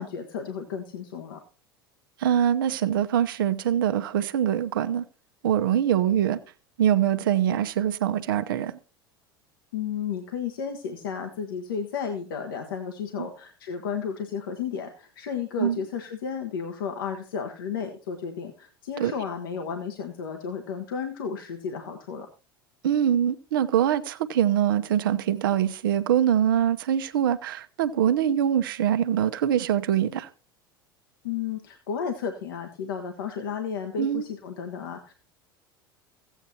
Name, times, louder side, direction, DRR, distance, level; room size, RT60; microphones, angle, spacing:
voice 1, 0.0-1.4 9.7-22.3 31.2-35.1, left 7 dB, 70° left, 1.1 m, -33 dB
voice 2, 2.2-5.0 5.4-6.4 6.8-8.8 13.2-13.3 15.6-15.8 19.0-19.1 22.8-30.3 34.0-34.2, right 10 dB, 65° right, 0.7 m, -23 dB
15.5 x 8.2 x 2.8 m
figure-of-eight pair, 75°, 12 cm